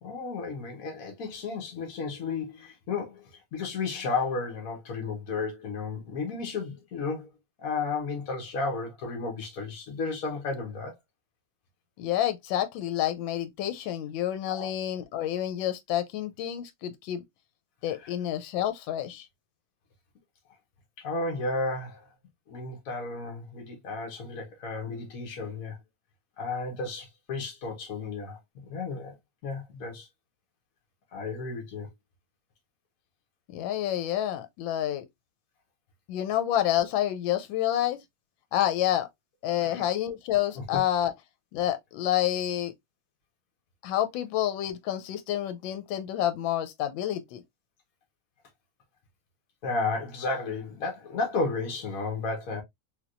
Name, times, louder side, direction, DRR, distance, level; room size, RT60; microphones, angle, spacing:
voice 1, 0.0-7.3 7.6-10.9 14.5-14.7 21.0-22.1 22.5-25.8 26.4-29.1 29.4-30.1 31.1-31.9 39.6-39.8 40.5-40.6 49.6-52.6, left 3 dB, 55° left, 1.2 m, -33 dB
voice 2, 12.0-17.2 17.8-19.3 33.5-35.0 36.1-38.0 38.5-39.1 39.4-41.1 41.5-42.7 43.8-47.4, left 12 dB, 85° left, 1.3 m, -28 dB
3.4 x 2.8 x 2.4 m
omnidirectional pair, 2.0 m